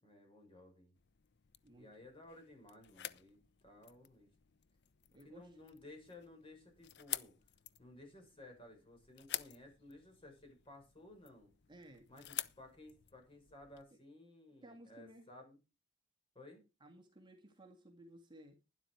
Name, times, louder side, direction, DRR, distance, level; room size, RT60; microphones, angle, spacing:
voice 1, 0.0-0.9 1.8-4.3 5.2-7.3 7.8-11.5 12.1-15.6 16.3-16.6, left 2 dB, 30° left, 3 dB, 6.0 m, -57 dB
sound 1, 1.0-13.8, left 12 dB, 60° left, 0.7 m, -50 dB
voice 2, 5.1-5.6 11.7-12.1 13.9-14.0 14.6-15.3 16.8-18.6, right 1 dB, 25° right, 3 dB, 2.2 m, -58 dB
12.0 x 11.0 x 4.7 m, 0.29 s
head